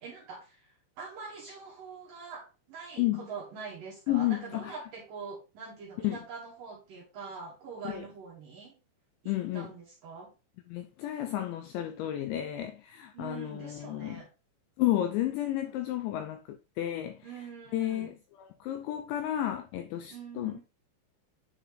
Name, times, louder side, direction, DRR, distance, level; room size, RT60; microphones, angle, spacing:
voice 1, 0.0-8.7 9.2-10.3 13.1-14.3 17.2-18.2 20.1-20.6, right 5 dB, 60° right, 2.4 m, -44 dB
voice 2, 4.1-4.8 6.0-6.2 7.9-8.0 9.3-9.7 10.7-14.2 14.8-17.3 17.7-20.6, left 13 dB, 85° left, 2.6 m, -32 dB
9.5 x 4.2 x 3.0 m
omnidirectional pair, 5.7 m